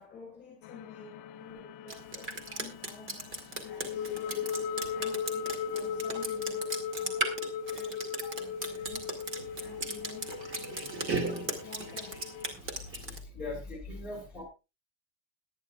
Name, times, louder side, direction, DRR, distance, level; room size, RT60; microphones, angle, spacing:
voice 1, 0.0-7.4 7.7-9.2 9.6-10.5 11.6-12.2 12.9-13.1 14.1-14.3, left 4 dB, 20° left, 5.2 m, -52 dB
sound 1, 0.6-12.5, left 7 dB, 45° left, 0.7 m, -38 dB
Drip, 1.9-13.2, right 2 dB, 25° right, 2.1 m, -37 dB
voice 2, 10.6-11.9 12.5-14.4, left 2 dB, 5° right, 5.3 m, -44 dB
21.5 x 9.9 x 2.4 m
supercardioid pair, 160°, 47 cm